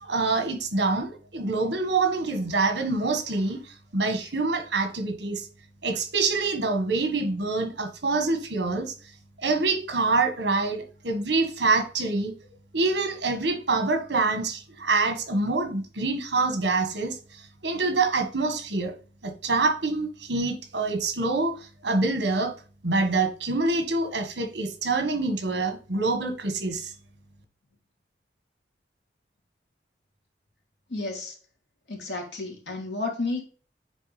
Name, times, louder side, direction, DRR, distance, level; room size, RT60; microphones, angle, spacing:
voice 1, 0.0-3.6 3.9-5.5 5.8-8.9 9.4-12.3 12.7-17.2 17.6-18.9 19.2-22.5 22.8-26.9, right 3 dB, 75° right, 1.5 m, -26 dB
voice 2, 30.9-31.4 31.9-33.4, left 3 dB, 80° left, 2.4 m, -31 dB
9.2 x 3.5 x 3.3 m
head